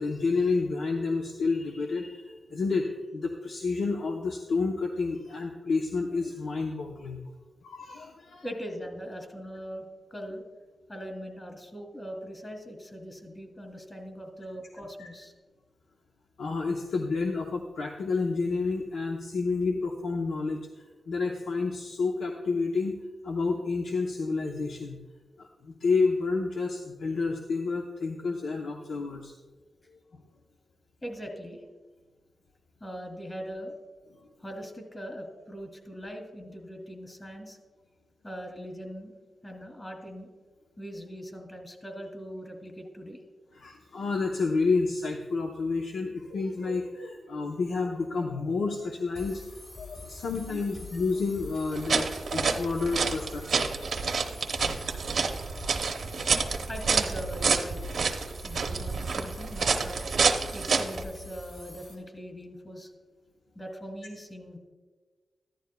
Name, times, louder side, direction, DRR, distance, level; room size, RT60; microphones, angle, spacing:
voice 1, 0.0-7.2 7.6-8.4 15.0-15.1 16.4-20.6 21.1-23.0 23.2-25.0 25.4-29.3 43.5-49.4 49.8-53.7 55.3-55.4, left 4 dB, 90° left, 1 dB, 0.7 m, -30 dB
voice 2, 8.4-10.4 10.9-15.3 31.0-31.6 32.8-33.7 34.4-37.6 38.2-39.2 39.4-40.3 40.8-43.2 56.7-57.8 58.4-60.1 60.5-62.9 63.6-64.6, equal, 25° left, 3 dB, 2.4 m, -41 dB
sound 1, 49.1-61.9, left 3 dB, 55° left, 3.6 m, -45 dB
sound 2, 51.7-61.0, right 5 dB, 75° right, 0.7 m, -28 dB
14.0 x 11.5 x 2.3 m, 1.3 s
cardioid pair, 65°, 0 cm